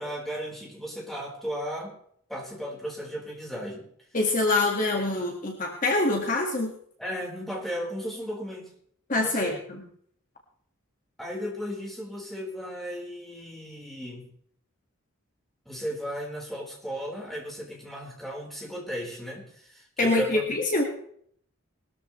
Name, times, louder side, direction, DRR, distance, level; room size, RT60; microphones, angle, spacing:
voice 1, 0.0-2.0 2.3-3.9 7.0-8.7 9.1-9.6 11.2-14.3 15.6-20.5, equal, ahead, -3 dB, 4.3 m, -35 dB
voice 2, 4.1-6.7 9.1-9.9 20.0-20.9, left 2 dB, 40° left, 1 dB, 1.8 m, -25 dB
20.5 x 13.5 x 3.2 m, 0.63 s
head